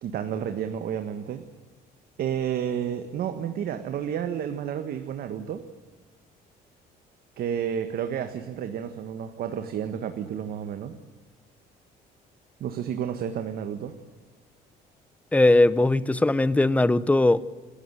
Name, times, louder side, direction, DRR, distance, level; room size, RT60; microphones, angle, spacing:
voice 1, 0.0-1.4 2.2-5.6 7.4-11.0 12.6-13.9, right 8 dB, 65° right, 1.6 m, -31 dB
voice 2, 15.3-17.5, left 2 dB, 10° left, 0.8 m, -20 dB
28.0 x 14.0 x 9.2 m
cardioid pair, 110°, 17 cm